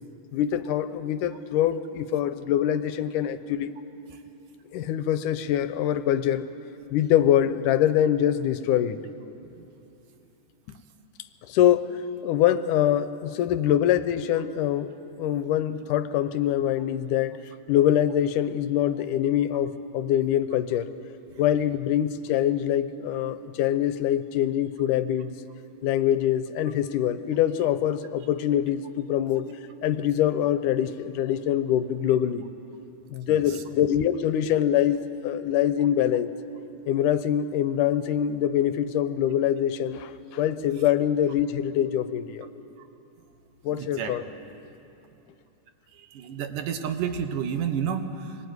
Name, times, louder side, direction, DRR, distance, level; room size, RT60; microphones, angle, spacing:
voice 1, 0.3-3.7 4.7-6.5 6.9-9.0 11.5-14.9 15.2-17.4 17.7-20.9 21.4-25.3 25.8-29.5 29.8-32.5 33.1-36.3 36.9-42.5 43.6-44.2, left 11 dB, 80° left, 12 dB, 2.3 m, -24 dB
voice 2, 43.7-44.2 45.9-48.4, right 7 dB, 80° right, 7 dB, 2.9 m, -31 dB
24.5 x 20.5 x 9.5 m, 2.9 s
omnidirectional pair, 3.7 m